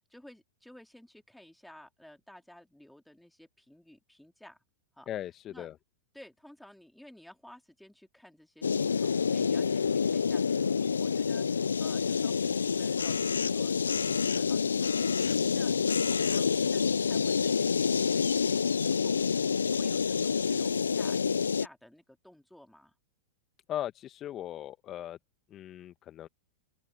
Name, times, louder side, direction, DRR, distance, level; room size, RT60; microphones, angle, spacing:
voice 1, 0.1-4.6 4.9-5.1 5.5-5.7 6.1-19.2 19.6-22.9, left 1 dB, ahead, 3.7 m, -54 dB
voice 2, 5.1-5.7 23.7-25.2 25.5-26.3, left 12 dB, 35° left, 1.3 m, -38 dB
sound 1, 8.6-21.7, left 6 dB, 85° left, 0.7 m, -28 dB
open air
hypercardioid pair, 100°, 0 cm